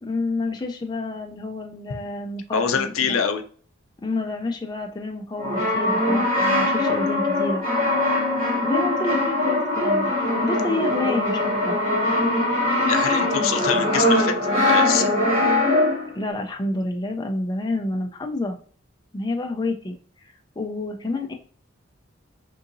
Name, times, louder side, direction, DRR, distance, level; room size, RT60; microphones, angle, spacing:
voice 1, 0.0-3.2 4.0-7.6 8.6-10.1 10.4-11.8 16.1-18.6 19.1-20.0 20.6-21.3, left 2 dB, 20° left, 2 dB, 0.4 m, -29 dB
voice 2, 2.5-3.4 12.7-14.3 14.7-15.1, left 7 dB, 90° left, 6 dB, 0.5 m, -25 dB
Brass instrument, 5.4-16.2, left 1 dB, 30° right, 1.1 m, -21 dB
3.7 x 2.7 x 2.6 m, 0.44 s
head